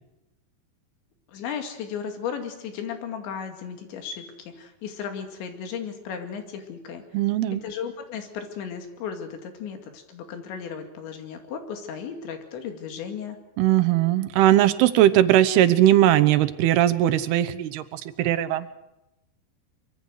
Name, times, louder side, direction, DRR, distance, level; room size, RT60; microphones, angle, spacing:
voice 1, 1.3-7.0 7.5-13.4, left 7 dB, 85° left, 5 dB, 4.7 m, -35 dB
voice 2, 7.1-7.6 13.6-18.7, right 13 dB, 75° right, 13 dB, 2.7 m, -19 dB
24.0 x 23.0 x 6.5 m, 0.92 s
omnidirectional pair, 5.1 m